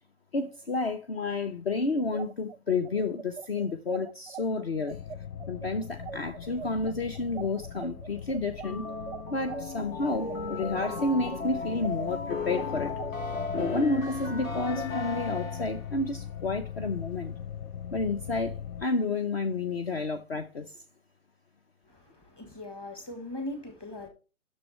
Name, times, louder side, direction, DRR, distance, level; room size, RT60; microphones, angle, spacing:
voice 1, 0.3-5.0 5.5-8.9 9.3-13.0 13.5-17.3 17.9-20.8, left 3 dB, 45° left, 0.7 m, -30 dB
sound 1, 2.0-11.4 11.8-14.9, right 7 dB, 35° right, 0.5 m, -42 dB
sound 2, 4.9-18.9, left 8 dB, 85° left, 0.7 m, -41 dB
sound 3, 8.6-15.9, left 3 dB, 65° left, 2.0 m, -35 dB
voice 2, 21.9-24.1, left 1 dB, 10° left, 1.3 m, -40 dB
11.0 x 6.4 x 3.2 m
hypercardioid pair, 150°, 44 cm